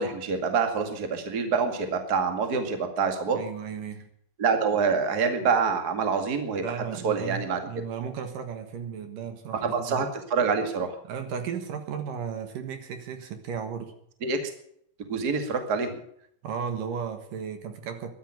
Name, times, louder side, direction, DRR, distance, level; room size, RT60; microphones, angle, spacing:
voice 1, 0.0-3.4 4.4-6.8 7.0-7.6 9.6-11.0 14.2-14.4 15.0-16.0, right 5 dB, 30° right, 6 dB, 2.1 m, -26 dB
voice 2, 3.3-4.1 6.6-10.0 11.0-13.9 16.4-18.1, right 7 dB, 70° right, 7 dB, 3.0 m, -35 dB
13.5 x 11.0 x 9.2 m, 0.68 s
omnidirectional pair, 4.2 m